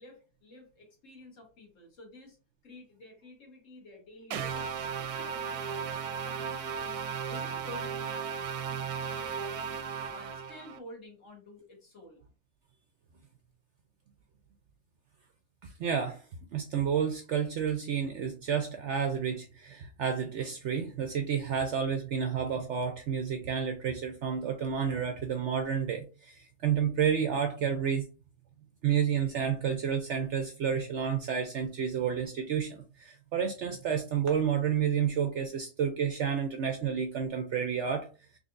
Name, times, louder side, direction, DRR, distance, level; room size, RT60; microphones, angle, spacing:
voice 1, 0.0-2.4 2.6-7.0 7.3-9.8 10.1-12.2, left 1 dB, 60° left, 0 dB, 1.7 m, -50 dB
sound 1, 4.3-10.8, right 7 dB, 90° right, 1.1 m, -35 dB
voice 2, 15.6-16.2 16.5-28.1 28.8-38.1, right 7 dB, 65° right, 5 dB, 0.7 m, -30 dB
4.1 x 3.0 x 2.5 m, 0.33 s
omnidirectional pair, 1.6 m